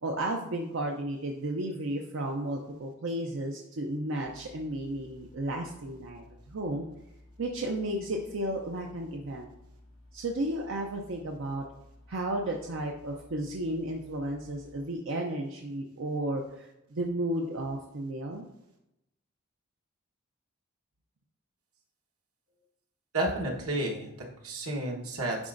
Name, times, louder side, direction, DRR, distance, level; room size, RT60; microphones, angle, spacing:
voice 1, 0.0-6.9 7.4-9.5 10.1-11.6 12.1-18.5, right 1 dB, 60° right, 1 dB, 0.5 m, -33 dB
sound 1, 4.2-14.8, left 1 dB, 40° left, 1.7 m, -55 dB
voice 2, 23.1-25.4, right 1 dB, 85° right, -1 dB, 1.2 m, -31 dB
9.7 x 4.2 x 2.5 m, 0.87 s
head